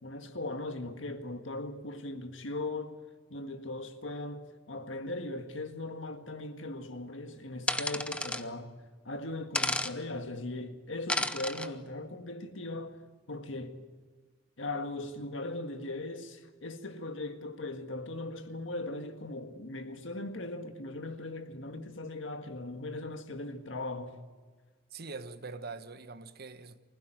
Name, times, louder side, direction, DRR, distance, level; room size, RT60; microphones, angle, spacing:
voice 1, 0.0-2.9 3.3-8.7 9.0-13.0 13.3-13.8 14.6-24.2, left 2 dB, 70° left, 1.8 m, -39 dB
sound 1, 7.7-8.4 9.5-9.9 11.1-11.7, left 2 dB, 5° left, 0.8 m, -31 dB
voice 2, 24.9-26.8, right 4 dB, 55° right, 1.2 m, -43 dB
25.0 x 16.0 x 9.2 m
head